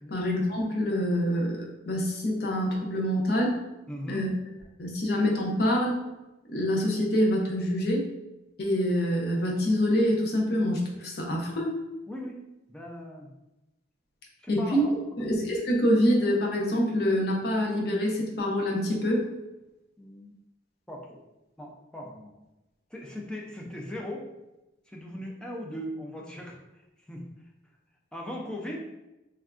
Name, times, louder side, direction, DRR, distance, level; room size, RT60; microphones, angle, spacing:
voice 1, 0.1-3.6 4.1-4.3 4.8-6.0 6.5-8.1 8.6-11.8 14.5-14.8 15.2-19.2, equal, 55° left, -1 dB, 0.6 m, -26 dB
voice 2, 3.9-4.3 12.1-12.4 12.7-13.3 14.4-15.2 20.0-20.3 20.9-21.2 21.6-22.3 22.9-24.3 24.9-27.2 28.1-28.9, equal, 5° left, -1 dB, 0.4 m, -39 dB
3.4 x 2.2 x 2.4 m, 0.97 s
head